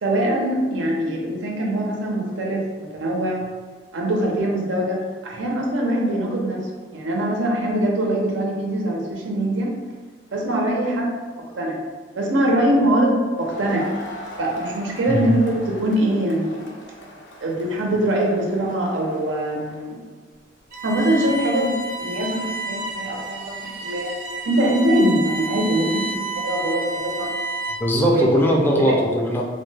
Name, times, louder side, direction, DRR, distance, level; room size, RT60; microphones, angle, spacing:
voice 1, 0.0-3.5 3.9-6.7 6.9-9.7 10.3-11.1 11.6-11.8 12.1-13.9 14.4-16.6 17.4-20.0 20.8-21.7 22.0-24.1 24.4-27.3 28.0-28.3 28.8-29.0, right 1 dB, 90° right, -1 dB, 0.6 m, -22 dB
Crowd, 13.3-19.9, equal, 75° left, 0.5 m, -41 dB
Bowed string instrument, 20.7-28.0, right 3 dB, 50° right, 0.6 m, -30 dB
voice 2, 27.8-29.4, equal, 10° left, -1 dB, 0.3 m, -19 dB
2.8 x 2.1 x 3.2 m, 1.5 s
head